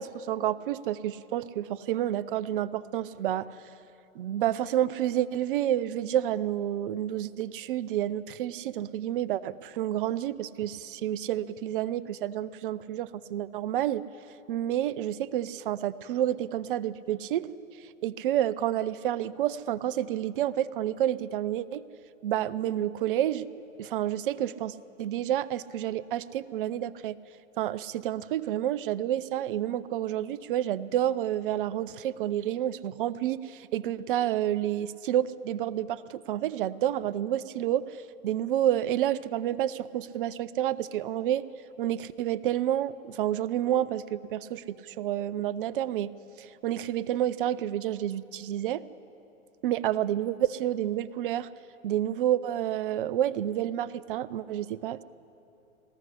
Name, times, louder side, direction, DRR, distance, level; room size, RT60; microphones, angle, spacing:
voice 1, 0.0-3.5 4.2-14.0 14.5-17.5 18.0-21.8 22.2-23.5 23.8-27.1 27.6-37.9 38.2-41.4 41.8-46.1 46.4-48.8 49.6-51.5 51.8-55.0, right 12 dB, 40° right, 17 dB, 0.6 m, -29 dB
20.0 x 14.0 x 10.0 m, 2.8 s
hypercardioid pair, 125°, 41 cm